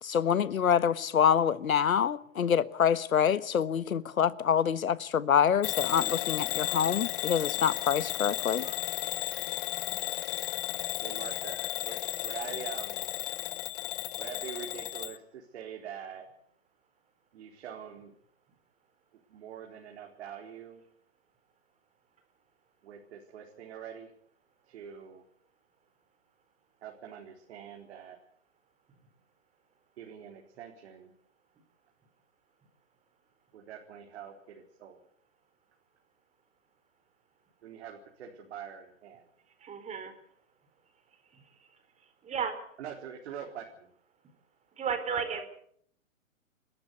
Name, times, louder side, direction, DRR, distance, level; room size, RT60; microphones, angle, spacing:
voice 1, 0.0-8.6, left 8 dB, 85° left, 1.4 m, -26 dB
Bell / Alarm, 5.6-15.2, left 16 dB, 40° left, 1.0 m, -34 dB
voice 2, 11.0-13.1 14.2-16.2 17.3-18.1 19.3-20.8 22.8-24.1 24.7-25.2 26.8-28.2 30.0-31.1 33.5-35.0 37.6-39.3 42.8-43.9, right 8 dB, 55° right, 4.2 m, -44 dB
voice 3, 39.6-40.1 42.2-42.6 44.8-45.5, right 6 dB, 15° right, 4.2 m, -33 dB
29.5 x 13.0 x 8.3 m
hypercardioid pair, 135°, 40 cm